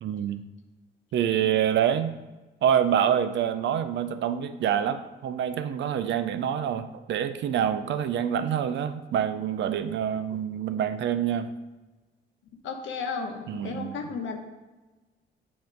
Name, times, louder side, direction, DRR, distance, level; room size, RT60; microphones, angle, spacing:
voice 1, 0.0-0.4 1.1-2.1 2.6-11.5 13.5-14.2, right 9 dB, 65° right, 10 dB, 0.5 m, -26 dB
voice 2, 12.6-14.4, left 5 dB, 75° left, 4 dB, 1.0 m, -33 dB
8.4 x 2.9 x 5.2 m, 1.2 s
cardioid pair, 90°, 20 cm